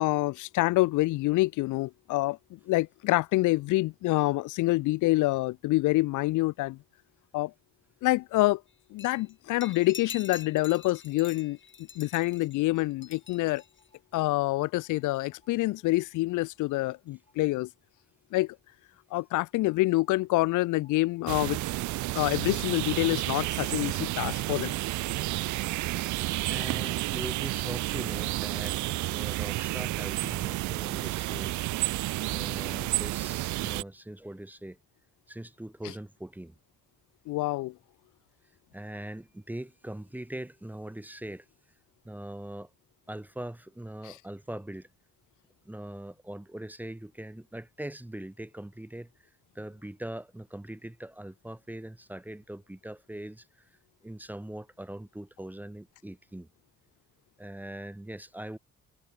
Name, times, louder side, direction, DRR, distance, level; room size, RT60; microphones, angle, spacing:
voice 1, 0.0-6.8 7.3-7.5 8.0-8.6 8.9-11.6 12.0-13.6 14.1-17.7 18.3-18.6 19.1-21.6 22.1-24.7 37.3-37.7 44.0-44.2, left 19 dB, 80° left, 0.5 m, -27 dB
sound 1, 9.0-9.3 9.6-13.9, left 6 dB, 40° left, 2.1 m, -45 dB
sound 2, 12.3-18.0 18.3-18.4 19.7-25.7 26.1-26.2 27.0-28.5, left 3 dB, 20° left, 5.8 m, -69 dB
sound 3, 21.3-33.8, right 18 dB, 75° right, 0.5 m, -31 dB
voice 2, 26.5-28.8 29.1-31.6 32.3-34.8 35.3-36.5 38.7-41.4 42.0-42.7 43.1-44.9 45.7-49.1 49.5-53.5 54.0-56.5 57.4-58.6, right 1 dB, 5° right, 0.8 m, -41 dB
cardioid pair, 90°, 30 cm